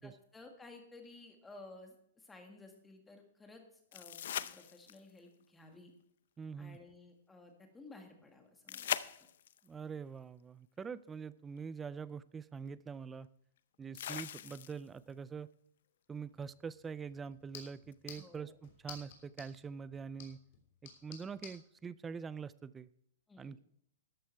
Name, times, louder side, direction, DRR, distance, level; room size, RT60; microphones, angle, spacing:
voice 1, 0.0-5.9 6.6-9.3 18.2-18.6 23.3-23.5, left 2 dB, 10° left, 3 dB, 1.8 m, -55 dB
sound 1, 3.9-5.2 8.7-9.7 11.6-11.7 13.9-15.0 17.9-18.0, left 10 dB, 65° left, 0.6 m, -40 dB
voice 2, 6.4-6.8 9.6-13.3 13.8-15.5 16.1-20.4 20.8-22.9 23.4-23.6, right 6 dB, 10° right, 18 dB, 0.3 m, -44 dB
sound 2, 16.3-21.6, left 7 dB, 50° left, 3.3 m, -55 dB
13.5 x 9.5 x 4.5 m, 0.72 s
hypercardioid pair, 160°, 0 cm